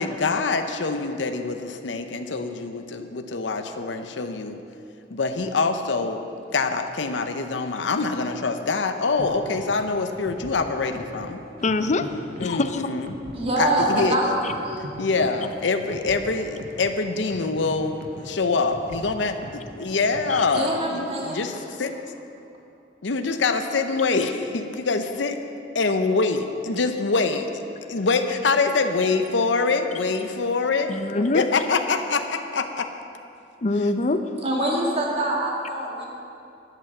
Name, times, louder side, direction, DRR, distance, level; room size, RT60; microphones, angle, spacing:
voice 1, 0.0-4.6 5.1-6.2 6.5-11.4 12.4-13.2 13.6-14.2 15.0-19.3 19.8-21.9 23.0-25.4 25.7-27.5 27.9-32.9, left 4 dB, 85° left, 7 dB, 0.7 m, -25 dB
sound 1, 9.2-20.5, right 1 dB, 55° right, 1.3 m, -42 dB
voice 2, 11.6-12.8 14.4-14.5 20.3-20.4 30.9-31.5 33.6-34.4, left 2 dB, 40° left, 9 dB, 0.5 m, -24 dB
voice 3, 13.3-14.9 20.5-21.7 34.4-36.1, right 1 dB, 35° right, -2 dB, 2.0 m, -25 dB
12.0 x 8.3 x 6.6 m, 2.6 s
head